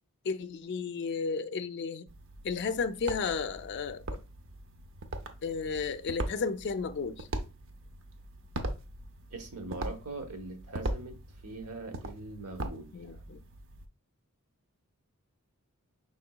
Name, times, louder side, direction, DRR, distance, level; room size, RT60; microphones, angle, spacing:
voice 1, 0.2-2.1 2.4-4.0 5.4-7.3 12.9-13.4, left 5 dB, 50° left, 0.4 m, -33 dB
sound 1, 2.1-13.9, right 1 dB, 60° right, 0.6 m, -41 dB
voice 2, 9.3-11.1 11.4-13.2, right 2 dB, 80° right, 1.0 m, -42 dB
5.2 x 3.8 x 2.2 m
head